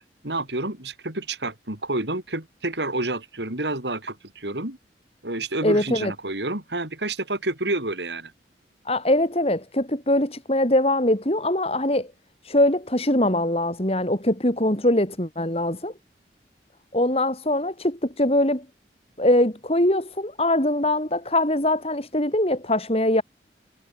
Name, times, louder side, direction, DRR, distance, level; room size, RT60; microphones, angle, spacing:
voice 1, 0.2-4.8 5.2-8.3, right 2 dB, 75° right, 5.6 m, -29 dB
voice 2, 5.6-6.1 8.9-12.1 12.4-15.9 16.9-18.6 19.2-23.2, left 1 dB, 35° left, 4.2 m, -22 dB
head